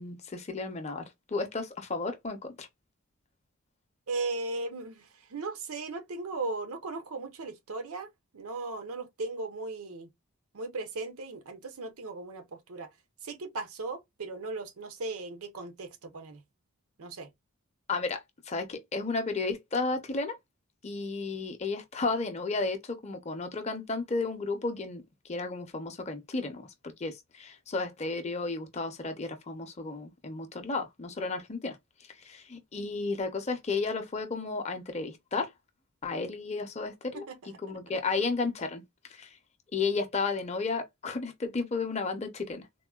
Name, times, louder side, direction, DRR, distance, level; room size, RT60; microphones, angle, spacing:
voice 1, 0.0-2.7 17.9-18.2 18.5-20.3 20.8-25.0 25.3-31.8 32.2-35.5 36.0-38.8 39.1-39.3 39.7-42.7, left 3 dB, 30° left, 0.5 m, -33 dB
voice 2, 4.1-10.1 10.5-12.9 13.2-16.4 17.0-17.3 37.1-37.6, right 3 dB, 80° right, 0.7 m, -37 dB
3.6 x 2.1 x 2.3 m
head